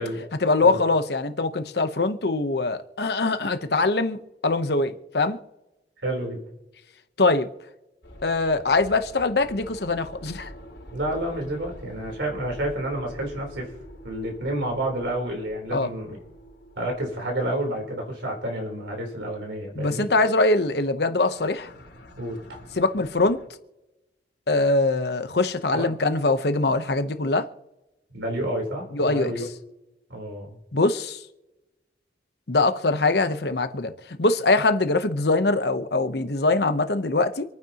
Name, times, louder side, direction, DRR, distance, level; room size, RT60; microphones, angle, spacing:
voice 1, 0.4-5.4 7.2-7.5 8.2-10.5 15.7-15.9 19.7-21.7 22.8-23.4 24.5-27.5 28.9-29.3 30.7-31.2 32.5-37.4, left 3 dB, 60° left, 0.9 m, -23 dB
voice 2, 6.0-6.4 10.9-13.7 14.0-16.2 16.8-20.1 22.2-22.6 25.7-25.9 28.1-29.4 30.1-30.6, right 1 dB, 85° right, 3.8 m, -30 dB
sound 1, 8.0-17.9 21.1-23.5, equal, 80° left, 4.0 m, -46 dB
27.0 x 9.4 x 2.9 m
head